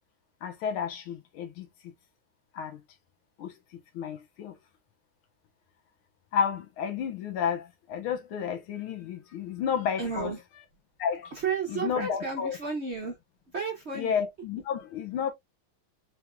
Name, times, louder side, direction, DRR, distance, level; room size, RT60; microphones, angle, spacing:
voice 1, 0.4-1.7 2.6-2.8 3.4-3.5 4.0-4.5 6.3-10.3 11.0-11.2 11.7-12.6 13.9-15.3, left 7 dB, 85° left, 1.8 m, -31 dB
voice 2, 10.0-10.4 11.3-13.2 13.5-14.2, right 5 dB, 50° right, 0.8 m, -32 dB
4.5 x 3.5 x 2.3 m
omnidirectional pair, 2.3 m